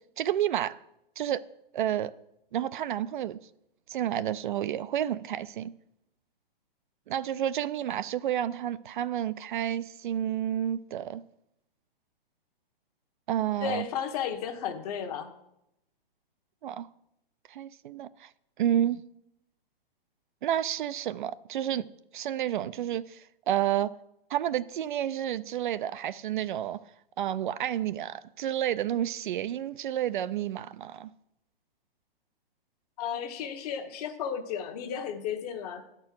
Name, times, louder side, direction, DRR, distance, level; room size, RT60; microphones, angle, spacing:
voice 1, 0.2-0.8 1.2-1.4 1.7-2.1 2.5-3.4 3.9-5.7 7.1-11.2 13.3-13.8 16.6-16.9 17.5-18.3 18.6-19.0 20.4-21.9 22.1-23.9 24.3-26.8 27.2-31.1, right 11 dB, 55° right, 0.4 m, -30 dB
voice 2, 13.6-15.3 33.0-35.8, left 8 dB, 40° left, 1.2 m, -33 dB
9.3 x 4.5 x 7.6 m
hypercardioid pair, 140°, 29 cm